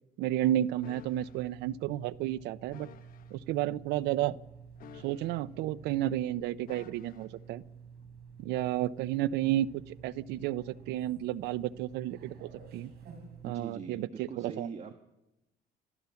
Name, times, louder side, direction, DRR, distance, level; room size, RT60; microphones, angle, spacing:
voice 1, 0.2-2.9 3.3-4.4 5.0-7.6 8.4-12.9 13.4-14.7, right 13 dB, 90° right, 18 dB, 0.7 m, -32 dB
sound 1, 0.7-13.7, right 6 dB, 70° right, 5.5 m, -51 dB
sound 2, 0.8-1.5 2.7-3.4 4.8-5.7 6.7-7.4 8.6-8.8, left 9 dB, 55° left, 1.2 m, -54 dB
voice 2, 13.4-14.9, right 6 dB, 40° right, 7 dB, 1.5 m, -42 dB
29.5 x 13.5 x 7.1 m, 0.94 s
cardioid pair, 110°, 17 cm